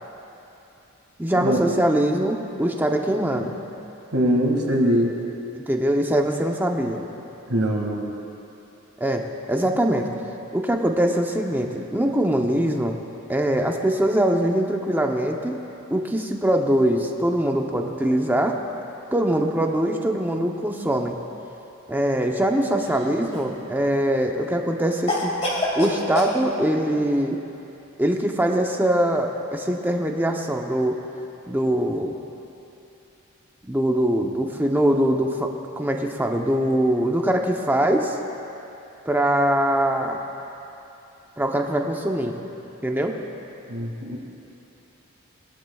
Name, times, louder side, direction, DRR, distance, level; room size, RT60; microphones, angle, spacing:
voice 1, 1.2-3.5 5.6-7.0 9.0-9.2 9.5-10.1 10.5-13.0 13.3-15.6 15.9-18.6 19.1-21.2 21.9-25.3 25.7-27.4 28.0-31.0 31.5-32.1 33.7-35.5 35.8-38.2 39.1-40.2 41.4-42.3 42.8-43.1, right 1 dB, 10° right, 2 dB, 0.7 m, -22 dB
voice 2, 4.1-5.2 7.5-8.1 43.7-44.2, equal, 90° right, 0 dB, 2.0 m, -22 dB
Cough, 22.8-23.6 25.1-26.4, left 1 dB, 30° left, 2.2 m, -26 dB
21.5 x 12.0 x 2.4 m, 2.9 s
head